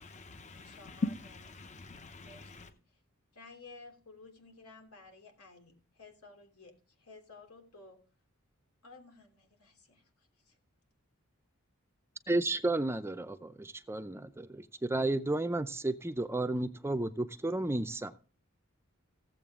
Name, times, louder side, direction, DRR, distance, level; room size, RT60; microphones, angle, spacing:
voice 1, 0.0-2.7, left 3 dB, 30° left, 0.8 m, -40 dB
voice 2, 0.6-1.0 2.2-2.8 3.3-8.0 8.8-10.6, left 3 dB, 90° left, 3.2 m, -54 dB
voice 3, 12.3-18.1, right 2 dB, 10° right, 0.5 m, -32 dB
15.5 x 7.8 x 3.7 m
head